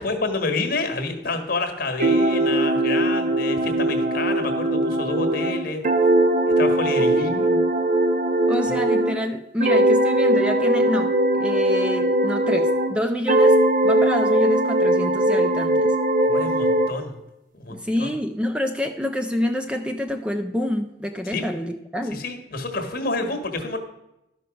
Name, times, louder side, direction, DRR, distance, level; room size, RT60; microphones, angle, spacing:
voice 1, 0.0-5.8 6.6-7.7 8.7-8.8 16.3-17.2 17.5-18.1 21.2-21.4 22.1-23.8, left 3 dB, 50° left, 6 dB, 1.4 m, -28 dB
sound 1, 2.0-9.2 9.6-13.0 13.3-16.9, right 1 dB, 45° right, 0.7 m, -20 dB
voice 2, 7.0-7.5 8.5-16.0 17.7-22.2, left 1 dB, 5° right, 6 dB, 0.4 m, -27 dB
12.5 x 5.6 x 5.1 m, 0.90 s
head